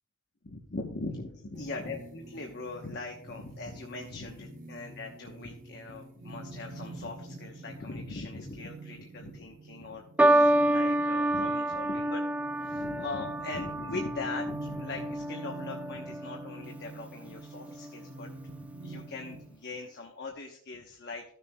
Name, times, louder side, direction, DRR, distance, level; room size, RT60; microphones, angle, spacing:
voice 1, 0.4-12.2 12.6-18.3 18.6-21.3, left 3 dB, 55° left, 1 dB, 1.0 m, -41 dB
sound 1, 1.5-19.6, right 2 dB, 40° right, 0.8 m, -47 dB
sound 2, 10.2-16.7 17.6-18.0, right 1 dB, 5° right, 0.3 m, -28 dB
15.5 x 6.7 x 2.3 m, 0.63 s
head